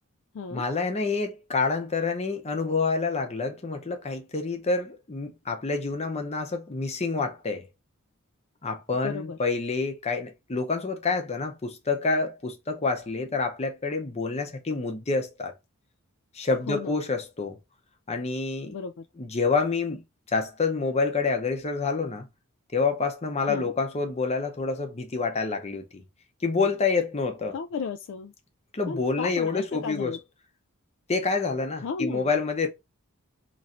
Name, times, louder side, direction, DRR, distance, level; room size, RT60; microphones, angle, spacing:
voice 1, 0.5-7.6 8.6-15.5 16.3-17.6 18.1-18.8 19.2-20.0 20.3-22.3 22.7-26.0 26.4-27.5 28.7-30.2 31.1-32.7, left 4 dB, 30° left, 0.7 m, -27 dB
voice 2, 9.0-9.4 16.7-17.0 18.7-19.1 23.5-23.7 27.5-28.3 28.9-30.2 31.8-32.3, left 5 dB, 60° left, 0.3 m, -34 dB
3.0 x 2.5 x 4.2 m
head